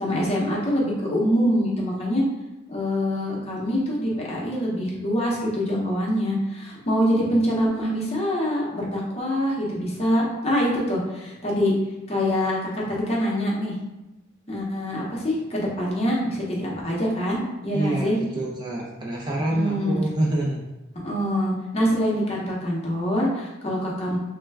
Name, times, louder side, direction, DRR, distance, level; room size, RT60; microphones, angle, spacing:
voice 1, 0.0-2.2 2.7-11.8 12.1-13.7 14.5-18.2 19.5-20.0 21.0-24.2, equal, 30° left, -4 dB, 0.7 m, -25 dB
voice 2, 17.7-20.6, right 1 dB, 20° right, -3 dB, 0.4 m, -26 dB
3.1 x 2.1 x 3.3 m, 1.0 s
head